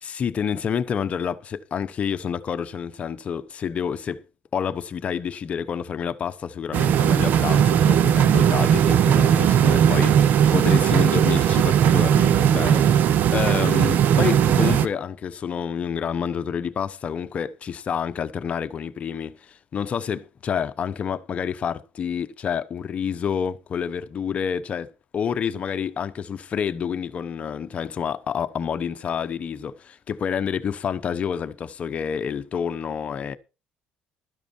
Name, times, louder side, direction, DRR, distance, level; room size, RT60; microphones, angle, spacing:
voice 1, 0.0-4.2 4.5-33.4, left 7 dB, 35° left, 0.9 m, -28 dB
sound 1, 6.7-14.9, right 9 dB, 55° right, 0.7 m, -18 dB
12.5 x 11.0 x 4.5 m
cardioid pair, 140°, 4 cm